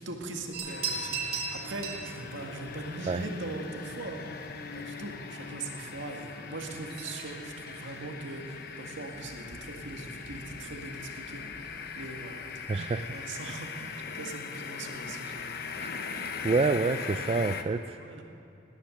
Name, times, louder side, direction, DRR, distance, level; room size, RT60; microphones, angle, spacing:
voice 1, 0.0-4.2 4.7-12.9 13.1-15.4 17.9-18.2, right 2 dB, 80° right, 2 dB, 1.9 m, -41 dB
sound 1, 0.5-16.7, right 4 dB, 55° right, 2.5 m, -44 dB
sound 2, 0.7-17.6, left 5 dB, 55° left, 0.8 m, -40 dB
voice 2, 12.7-13.1 15.8-16.0 16.4-18.0, right 3 dB, 30° right, 9 dB, 0.3 m, -27 dB
18.0 x 10.5 x 6.4 m, 2.7 s
head